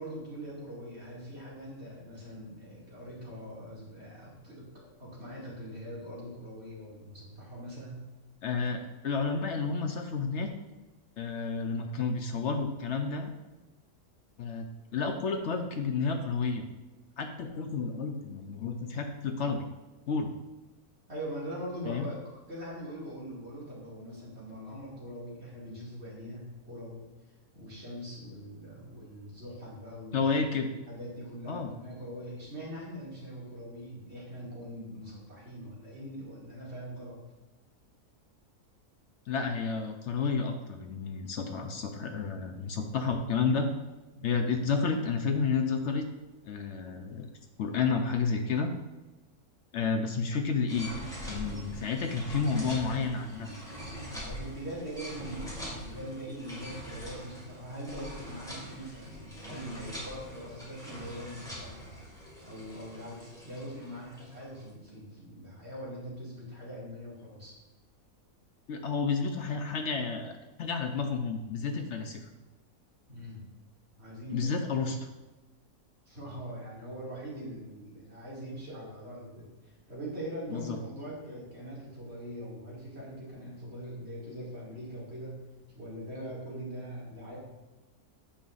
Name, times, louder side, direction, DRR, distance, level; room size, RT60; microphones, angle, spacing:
voice 1, 0.0-8.0 21.1-27.0 27.5-30.3 30.9-37.2 44.1-44.4 54.2-67.5 73.1-73.4 74.0-74.5 76.1-85.4 85.7-87.4, equal, 45° right, -7 dB, 2.6 m, -42 dB
voice 2, 8.4-10.5 11.2-13.3 14.4-14.6 14.9-16.7 17.2-19.6 20.1-20.3 21.9-22.1 30.1-30.7 31.5-31.7 39.3-43.7 44.2-46.1 46.4-47.3 47.6-48.7 49.7-50.9 51.3-53.5 68.7-72.3 74.3-75.1 80.5-80.8, left 5 dB, 65° left, 5 dB, 0.8 m, -31 dB
sound 1, 50.7-64.6, equal, ahead, 1.9 m, -43 dB
8.7 x 5.4 x 2.5 m, 1.1 s
omnidirectional pair, 1.6 m